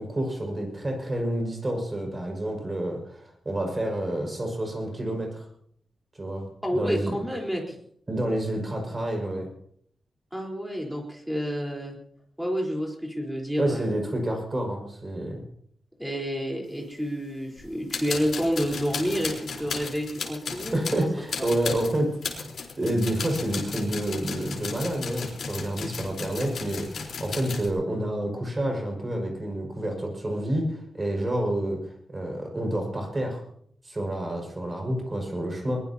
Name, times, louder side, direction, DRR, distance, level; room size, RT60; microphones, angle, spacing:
voice 1, 0.0-5.5 6.2-6.4 6.7-7.2 8.1-9.5 13.6-15.4 20.7-22.5 22.8-33.4 33.8-35.8, right 1 dB, 20° right, 1 dB, 5.6 m, -29 dB
voice 2, 6.6-7.8 10.3-12.0 12.4-13.9 16.0-21.1, equal, 5° right, -1 dB, 4.2 m, -29 dB
sound 1, 17.6-17.7 17.9-27.7, left 5 dB, 70° left, 4.2 m, -35 dB
22.5 x 20.5 x 2.9 m, 0.66 s
wide cardioid pair, 165°, 0 cm